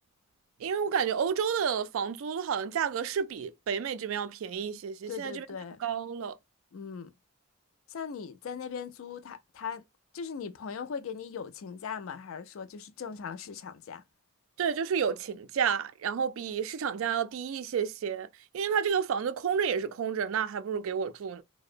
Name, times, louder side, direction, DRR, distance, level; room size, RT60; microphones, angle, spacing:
voice 1, 0.6-5.5 5.8-6.4 14.6-18.3 18.5-21.4, right 7 dB, 70° right, 0.3 m, -30 dB
voice 2, 5.1-5.8 6.7-7.1 7.9-9.8 10.1-14.0, left 6 dB, 70° left, 0.4 m, -39 dB
2.8 x 2.0 x 2.5 m
head